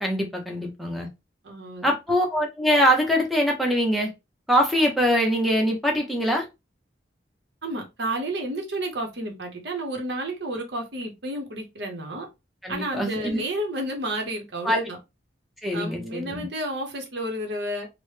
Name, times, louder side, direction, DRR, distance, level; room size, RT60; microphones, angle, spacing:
voice 1, 0.0-1.1 1.8-4.1 4.5-6.4 12.6-13.4 14.6-14.8 15.6-16.4, equal, ahead, 0.6 m, -23 dB
voice 2, 1.4-1.9 7.6-12.3 12.7-15.0 15.7-17.9, right 1 dB, 65° right, 0.9 m, -31 dB
3.0 x 2.1 x 3.1 m
head